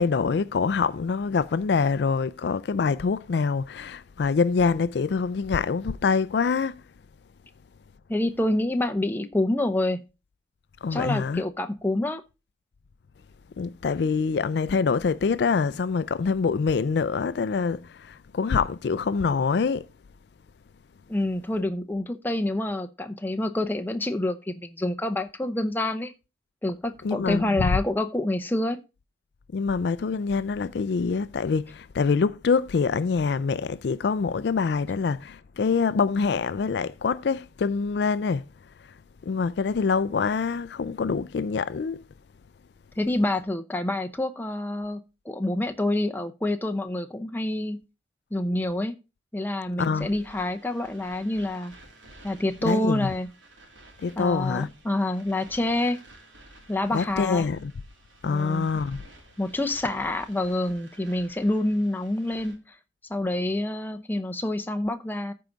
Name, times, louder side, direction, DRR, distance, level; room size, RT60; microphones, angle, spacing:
voice 1, 0.0-6.8 10.8-11.4 13.6-19.9 27.0-27.7 29.5-38.5 39.3-42.0 49.8-50.1 52.6-53.1 54.0-54.7 56.9-57.7 58.2-59.0, left 5 dB, 60° left, 0.4 m, -25 dB
voice 2, 8.1-10.0 10.9-12.2 21.1-26.1 26.6-28.8 43.0-47.8 48.3-48.9 49.3-51.7 52.2-53.3 54.2-56.0 56.7-57.5 58.2-58.7 59.4-62.8 63.1-65.3, left 1 dB, 10° left, 0.7 m, -27 dB
sound 1, 50.0-62.6, right 2 dB, 85° right, 2.7 m, -52 dB
14.0 x 4.7 x 3.9 m
head